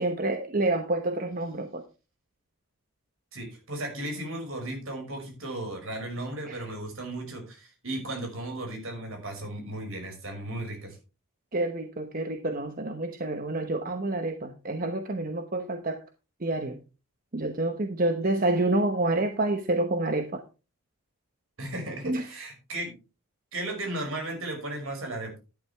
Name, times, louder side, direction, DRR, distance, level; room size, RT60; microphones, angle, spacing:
voice 1, 0.0-1.8 6.5-6.6 11.5-16.0 16.4-16.8 17.3-20.4 22.0-22.3, right 2 dB, 40° right, 1.0 m, -28 dB
voice 2, 3.3-11.0 21.6-22.9 23.5-25.4, right 1 dB, 65° right, 5.9 m, -35 dB
12.0 x 11.0 x 3.5 m
head